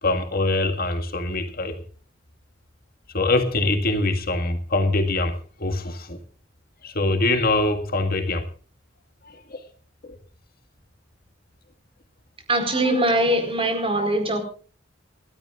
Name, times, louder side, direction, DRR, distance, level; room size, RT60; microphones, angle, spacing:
voice 1, 0.0-1.8 3.1-6.2 6.8-8.5 9.3-9.6 10.0-10.2, left 2 dB, 50° left, 1.9 m, -24 dB
voice 2, 12.5-14.4, right 1 dB, 30° right, 4.7 m, -22 dB
29.5 x 13.0 x 2.5 m
head